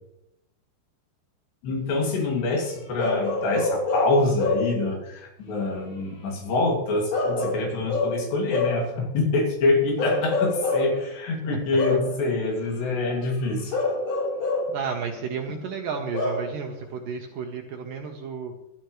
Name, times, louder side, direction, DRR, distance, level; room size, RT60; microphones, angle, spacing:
voice 1, 1.6-13.7, left 3 dB, 75° left, 1 dB, 4.6 m, -25 dB
Bark / Livestock farm animals working animals, 3.0-4.8 7.1-8.9 10.0-11.0 11.8-12.2 13.7-14.8 16.1-16.5, left 2 dB, 50° left, 5.1 m, -26 dB
voice 2, 14.7-18.5, right 6 dB, 70° right, 3 dB, 2.1 m, -32 dB
18.0 x 12.5 x 3.2 m, 0.85 s
omnidirectional pair, 5.0 m